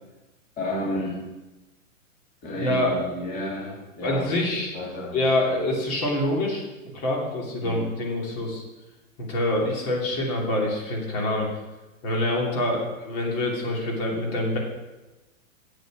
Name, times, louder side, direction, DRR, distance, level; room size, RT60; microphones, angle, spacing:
voice 1, 0.6-1.3 2.4-4.2 4.7-5.2 7.6-7.8 9.7-9.8, left 1 dB, 20° left, -5 dB, 2.5 m, -31 dB
voice 2, 2.6-3.0 4.0-4.7 5.1-6.6 6.9-8.6 9.3-11.5 12.0-14.6, left 1 dB, 45° left, -1 dB, 2.9 m, -25 dB
7.8 x 6.6 x 7.4 m, 1.1 s
hypercardioid pair, 140°, 40 cm